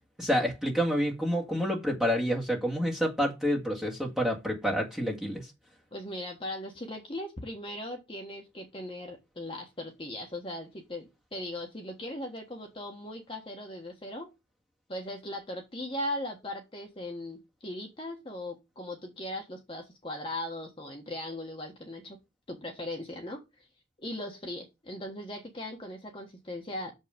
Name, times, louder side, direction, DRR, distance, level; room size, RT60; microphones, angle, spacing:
voice 1, 0.2-5.5, equal, 5° right, 1.9 m, -28 dB
voice 2, 5.9-14.3 14.9-22.2 22.5-23.4 24.0-26.9, left 1 dB, 30° left, 1.3 m, -38 dB
6.8 x 5.6 x 5.1 m
head